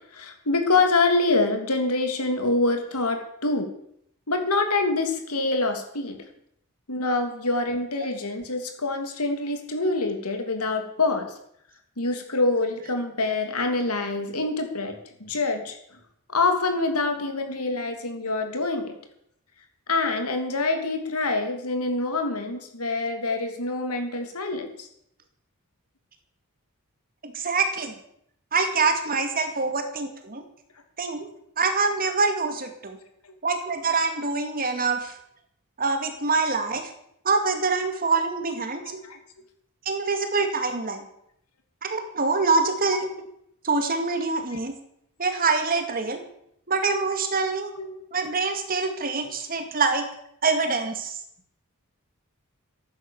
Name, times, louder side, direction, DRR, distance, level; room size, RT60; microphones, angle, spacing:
voice 1, 0.0-3.7 4.3-6.2 6.9-11.3 12.0-15.8 16.3-19.0 19.9-24.9 33.2-33.3 39.0-39.2 47.7-48.0 48.8-48.9, left 3 dB, 85° left, 5 dB, 3.0 m, -26 dB
voice 2, 27.2-28.0 28.5-30.4 31.0-31.3 31.6-33.0 33.4-35.1 35.8-36.9 37.2-39.0 39.9-41.1 41.8-43.1 43.6-44.8 45.2-46.2 46.7-47.7 48.1-50.1 50.4-51.2, right 4 dB, 40° right, 6 dB, 2.3 m, -25 dB
14.5 x 10.5 x 7.2 m, 0.72 s
head